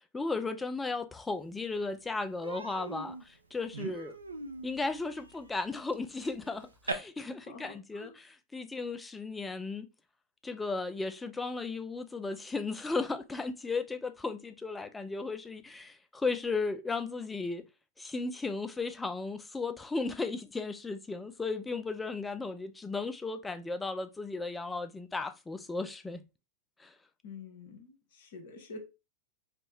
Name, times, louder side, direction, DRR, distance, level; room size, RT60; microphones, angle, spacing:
voice 1, 0.1-4.2 4.6-9.9 10.4-17.6 18.0-26.2 26.8-26.9, left 3 dB, 10° left, 0.4 m, -35 dB
Human voice, 1.4-1.5 1.8-2.0 2.4-6.9, right 3 dB, 85° right, 0.5 m, -42 dB
voice 2, 7.4-8.1 27.2-28.8, left 4 dB, 60° left, 1.1 m, -47 dB
3.4 x 2.1 x 4.1 m
figure-of-eight pair, 95°, 0 cm